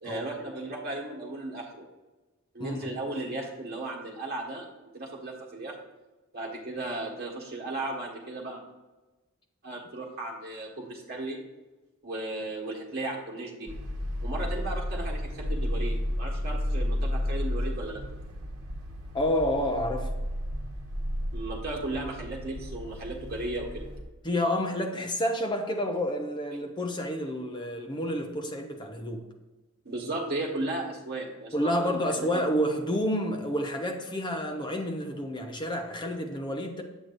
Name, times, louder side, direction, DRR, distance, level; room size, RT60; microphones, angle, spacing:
voice 1, 0.0-1.8 2.5-4.7 4.9-5.8 6.3-8.6 9.6-11.4 12.0-13.7 14.2-18.0 21.3-23.9 29.8-32.4, right 2 dB, 45° right, -2 dB, 1.6 m, -35 dB
sound 1, 13.7-24.0, left 1 dB, 85° right, 1.0 m, -32 dB
voice 2, 19.1-20.1 24.2-29.2 31.5-36.8, equal, 20° left, 3 dB, 0.7 m, -29 dB
8.0 x 7.6 x 2.6 m, 1.2 s
head